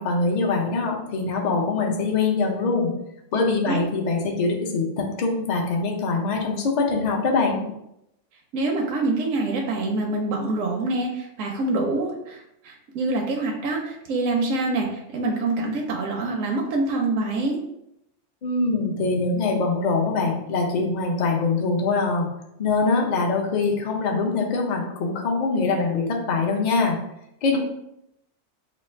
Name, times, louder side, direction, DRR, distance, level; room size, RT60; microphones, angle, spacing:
voice 1, 0.0-2.9 3.3-7.6 18.4-22.3 22.6-27.0 27.4-27.6, left 3 dB, 45° left, 1 dB, 0.6 m, -23 dB
voice 2, 3.3-3.8 8.5-17.6, right 2 dB, 75° right, 0 dB, 0.9 m, -26 dB
3.2 x 2.4 x 4.2 m, 0.81 s
omnidirectional pair, 1.3 m